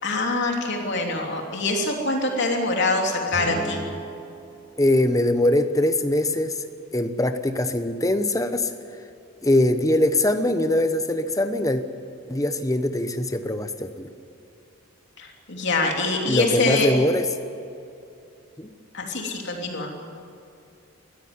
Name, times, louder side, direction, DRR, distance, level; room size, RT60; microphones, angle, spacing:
voice 1, 0.0-3.9 15.2-16.9 18.9-20.0, left 2 dB, 50° left, 1 dB, 3.2 m, -24 dB
Guitar, 3.3-6.1, right 1 dB, 10° right, 5.9 m, -37 dB
voice 2, 4.8-6.6 6.9-8.7 9.4-11.8 12.3-14.1 16.3-17.3 18.6-18.7, left 1 dB, 15° left, 9 dB, 1.0 m, -22 dB
22.0 x 14.5 x 9.7 m, 2.6 s
head